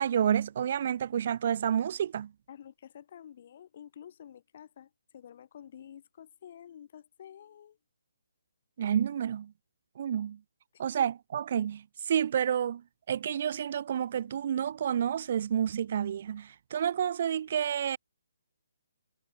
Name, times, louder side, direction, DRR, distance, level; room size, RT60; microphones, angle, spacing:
voice 1, 0.0-2.3 8.8-9.5 10.0-10.4 10.8-12.8 13.1-18.0, right 9 dB, 45° right, 0.3 m, -29 dB
voice 2, 2.5-7.8 10.7-10.9, left 9 dB, 45° left, 3.2 m, -50 dB
hypercardioid pair, 160°, 0 cm